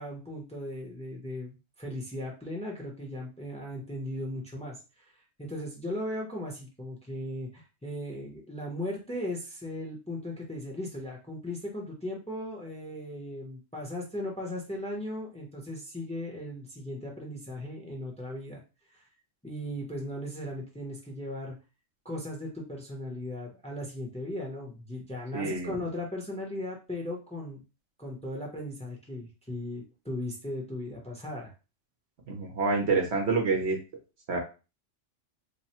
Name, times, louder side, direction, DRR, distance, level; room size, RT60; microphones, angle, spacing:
voice 1, 0.0-5.1 5.4-18.6 18.9-19.1 19.4-21.5 22.0-27.6 28.0-31.5, left 1 dB, 5° left, -2 dB, 0.8 m, -37 dB
voice 2, 25.3-25.7 32.3-33.8 34.3-34.4, right 4 dB, 60° right, 2 dB, 1.1 m, -27 dB
3.2 x 2.2 x 4.2 m, 0.31 s
omnidirectional pair, 1.3 m